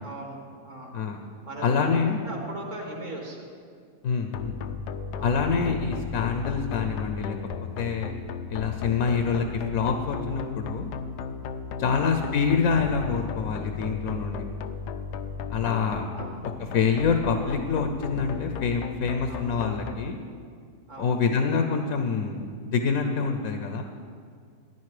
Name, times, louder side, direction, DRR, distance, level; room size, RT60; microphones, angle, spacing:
voice 1, 0.0-0.9 1.5-1.8 2.2-3.4 5.1-5.4 11.8-12.1 16.1-16.5 19.3-19.4 20.9-21.1, right 1 dB, 50° right, 0 dB, 2.2 m, -39 dB
voice 2, 1.6-2.2 4.0-4.6 5.2-7.4 7.8-8.1 8.5-10.9 11.8-14.5 15.5-16.1 16.7-20.2 21.0-23.8, left 5 dB, 65° left, 5 dB, 1.1 m, -26 dB
sound 1, 4.3-19.9, left 6 dB, 90° left, 1.2 m, -35 dB
14.0 x 10.5 x 4.9 m, 2.1 s
omnidirectional pair, 1.7 m